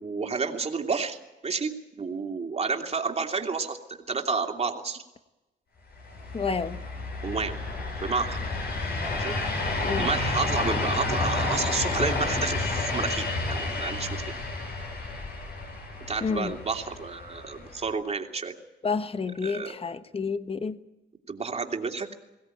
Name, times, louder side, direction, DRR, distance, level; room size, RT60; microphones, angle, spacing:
voice 1, 0.0-5.0 7.2-7.6 8.0-8.5 9.1-9.3 9.8-14.4 16.1-18.5 19.4-19.7 21.3-22.1, right 4 dB, 30° right, 2.9 m, -30 dB
sound 1, 6.0-17.9, left 3 dB, 55° left, 7.5 m, -30 dB
voice 2, 6.3-6.8 9.8-10.1 16.2-16.6 18.8-20.8, left 5 dB, 30° left, 1.3 m, -29 dB
22.0 x 17.0 x 9.1 m
cardioid pair, 90°, 20 cm